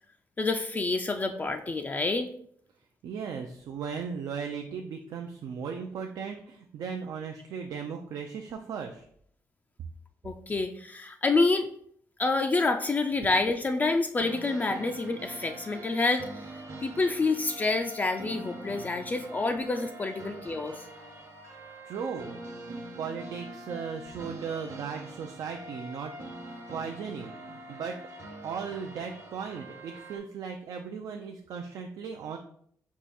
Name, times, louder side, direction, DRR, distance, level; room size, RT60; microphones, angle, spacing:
voice 1, 0.4-2.3 10.2-11.7 12.2-16.3 16.8-20.8, left 3 dB, 25° left, 6 dB, 0.3 m, -28 dB
voice 2, 3.0-9.1 20.2-20.3 21.8-22.4 23.0-26.1 26.5-28.0 28.4-32.4, right 6 dB, 75° right, 3 dB, 0.4 m, -37 dB
sound 1, 14.2-30.2, right 1 dB, 55° right, 1.1 m, -44 dB
4.7 x 2.3 x 4.2 m, 0.63 s
cardioid pair, 95°, 6 cm